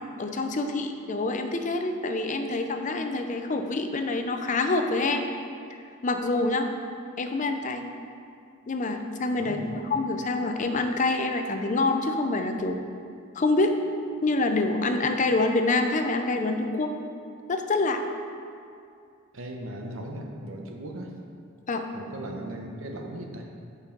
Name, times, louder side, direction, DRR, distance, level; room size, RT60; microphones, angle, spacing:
voice 1, 0.2-5.3 6.0-6.7 7.2-7.9 8.7-12.8 13.4-13.7 14.2-16.9 17.5-18.0 21.7-21.8, left 2 dB, 35° left, 6 dB, 0.5 m, -26 dB
voice 2, 9.4-9.8 19.3-21.1 21.9-23.5, right 1 dB, 65° right, 2 dB, 0.9 m, -37 dB
7.4 x 5.4 x 5.2 m, 2.3 s
head